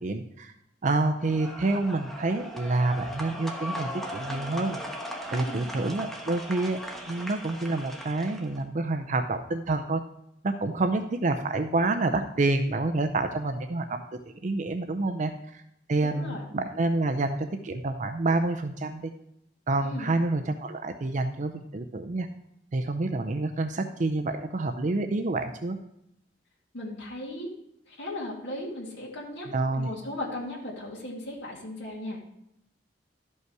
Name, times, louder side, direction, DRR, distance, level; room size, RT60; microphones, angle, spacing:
voice 1, 0.0-0.5 0.8-4.8 5.3-6.8 7.1-10.0 10.4-14.0 14.4-15.6 15.9-19.1 19.7-22.3 22.7-25.8 29.5-29.9, right 2 dB, 45° right, 7 dB, 0.5 m, -28 dB
sound 1, 1.2-8.6, equal, ahead, 1.1 m, -38 dB
voice 2, 5.3-5.7 16.0-16.4 19.8-20.1 26.7-27.5 27.9-29.5 29.8-32.2, left 1 dB, 75° left, -3 dB, 2.2 m, -37 dB
12.5 x 5.5 x 4.7 m, 0.79 s
head